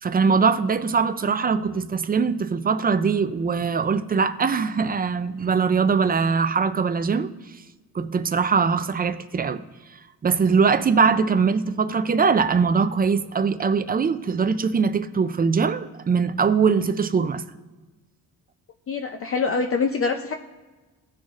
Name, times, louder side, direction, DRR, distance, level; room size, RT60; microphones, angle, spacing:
voice 1, 0.0-7.3 7.9-9.6 10.2-17.4, right 5 dB, 25° right, 0.4 m, -22 dB
voice 2, 18.9-20.3, left 4 dB, 35° left, 0.5 m, -24 dB
17.0 x 6.3 x 2.4 m
cardioid pair, 135°, 38 cm